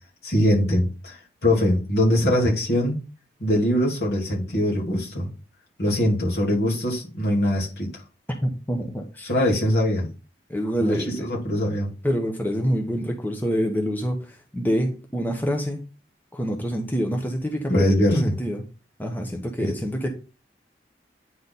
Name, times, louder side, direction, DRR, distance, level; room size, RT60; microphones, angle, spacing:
voice 1, 0.2-3.0 3.4-5.3 5.8-8.0 9.2-10.1 10.8-11.9 17.7-18.3 19.6-19.7, left 1 dB, 70° left, 3.0 m, -22 dB
voice 2, 8.4-9.3 10.5-11.3 12.0-15.9 16.3-18.6 19.0-20.1, equal, 10° left, 0.9 m, -26 dB
9.3 x 4.1 x 4.1 m
head